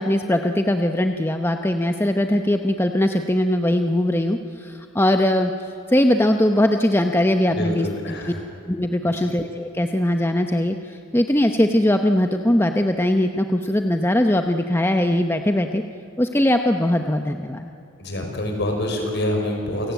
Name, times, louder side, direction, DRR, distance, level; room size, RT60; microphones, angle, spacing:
voice 1, 0.0-5.5 5.9-7.9 8.7-15.8 16.2-17.7, left 1 dB, 10° left, 5 dB, 0.8 m, -20 dB
voice 2, 7.5-8.4 9.0-9.3 18.0-19.9, left 1 dB, 55° left, 2 dB, 5.6 m, -26 dB
28.0 x 17.5 x 9.2 m, 2.7 s
head